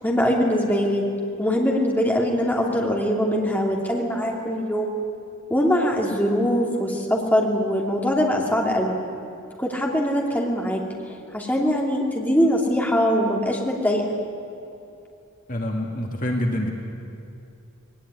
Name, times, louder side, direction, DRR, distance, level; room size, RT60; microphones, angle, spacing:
voice 1, 0.0-1.0 1.4-4.9 5.5-9.0 9.6-10.8 11.3-14.1, equal, 10° left, -1 dB, 2.7 m, -22 dB
voice 2, 15.5-16.7, left 1 dB, 40° left, 1 dB, 2.1 m, -26 dB
21.0 x 18.5 x 9.9 m, 2.6 s
head